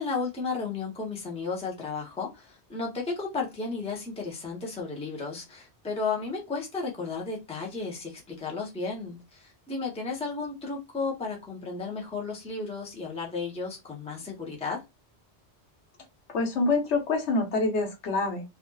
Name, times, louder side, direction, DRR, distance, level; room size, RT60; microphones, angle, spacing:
voice 1, 0.0-14.8, left 4 dB, 10° left, 0.5 m, -33 dB
voice 2, 16.3-18.4, left 3 dB, 90° left, 1.1 m, -26 dB
2.5 x 2.4 x 2.3 m
omnidirectional pair, 1.1 m